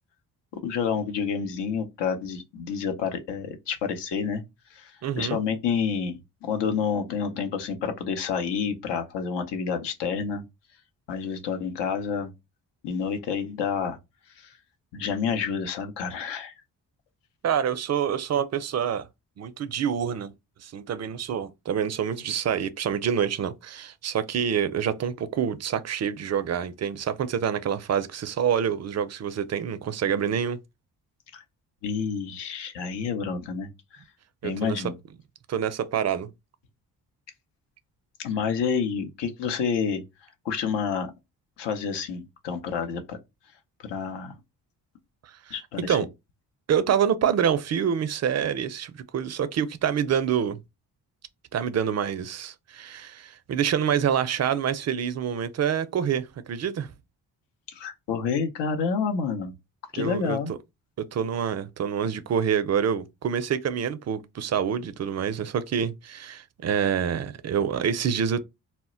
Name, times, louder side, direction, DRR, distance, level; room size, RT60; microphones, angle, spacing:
voice 1, 0.6-4.4 4.7-10.4 11.1-12.3 12.8-14.0 14.4-14.5 14.9-16.5 31.3-31.4 31.8-34.0 34.4-34.9 38.2-40.0 40.4-41.1 41.6-43.2 43.9-44.3 45.5-46.0 57.7-59.5 59.9-60.5, left 6 dB, 75° left, 0.7 m, -29 dB
voice 2, 5.0-5.4 17.4-19.1 19.4-20.3 20.6-30.6 34.4-34.8 35.5-36.3 45.2-45.5 45.9-46.1 46.7-50.6 51.5-56.9 59.9-60.4 61.0-68.4, right 8 dB, 40° right, 0.4 m, -27 dB
2.1 x 2.1 x 3.7 m
supercardioid pair, 50°, 43 cm